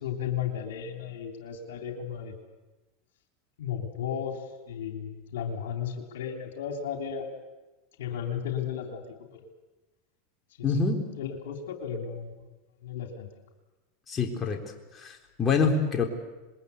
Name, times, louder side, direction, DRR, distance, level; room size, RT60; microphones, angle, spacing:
voice 1, 0.0-2.3 3.6-4.4 4.7-7.3 8.0-9.0 9.3-9.4 10.6-10.8 11.1-12.4 12.8-13.3, left 8 dB, 80° left, 4 dB, 3.4 m, -34 dB
voice 2, 10.6-11.0 14.1-14.6 14.9-16.0, left 4 dB, 25° left, 2 dB, 3.9 m, -26 dB
26.5 x 21.5 x 8.3 m, 1.1 s
hypercardioid pair, 105°, 0 cm